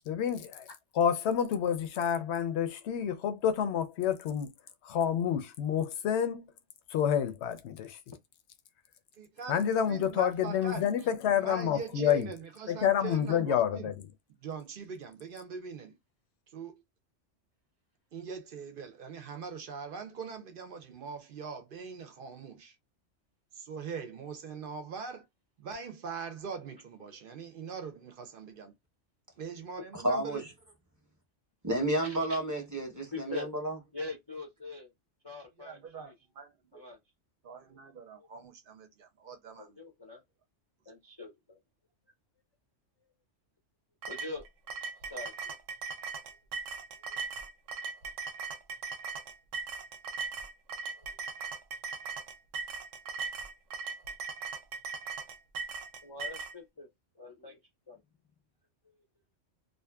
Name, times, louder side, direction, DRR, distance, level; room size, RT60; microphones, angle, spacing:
voice 1, 0.1-0.7 0.9-4.5 4.8-6.5 6.9-8.0 9.5-12.4 12.7-14.1, left 9 dB, 70° left, 0.8 m, -29 dB
voice 2, 9.2-11.1 11.4-14.0 14.4-16.0 16.5-16.7 18.1-22.8 23.5-25.2 25.6-28.7 29.4-30.5 35.6-36.9 37.4-39.8, right 5 dB, 55° right, 0.7 m, -42 dB
voice 3, 29.9-30.5 31.6-33.8, right 1 dB, 20° right, 0.7 m, -31 dB
voice 4, 32.0-32.4 33.1-33.5 33.9-34.9 35.2-36.1 36.7-37.0 38.1-38.3 39.6-40.2 40.9-41.6 44.1-44.4 45.1-45.3 47.1-47.2 53.2-53.3 56.0-56.9 57.2-57.6 57.9-58.0, left 3 dB, 30° left, 0.4 m, -42 dB
sound 1, 44.0-56.5, right 4 dB, 90° right, 0.9 m, -39 dB
2.6 x 2.5 x 2.2 m
omnidirectional pair, 1.3 m